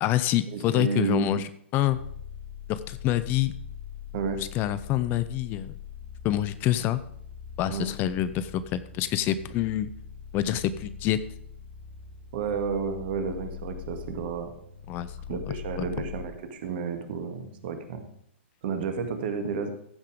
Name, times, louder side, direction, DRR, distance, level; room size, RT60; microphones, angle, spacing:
voice 1, 0.0-2.0 2.7-3.5 4.4-5.7 6.2-7.0 7.6-9.9 10.3-11.2 14.9-15.4 15.8-16.1, left 12 dB, 30° left, 14 dB, 0.6 m, -27 dB
voice 2, 0.5-1.3 4.1-4.4 7.7-7.9 12.3-14.5 15.3-18.1 18.6-19.7, right 5 dB, 50° right, 7 dB, 1.8 m, -31 dB
sound 1, 1.9-16.3, left 7 dB, 60° left, 2.7 m, -42 dB
15.0 x 5.7 x 5.0 m, 0.70 s
figure-of-eight pair, 115°, 7 cm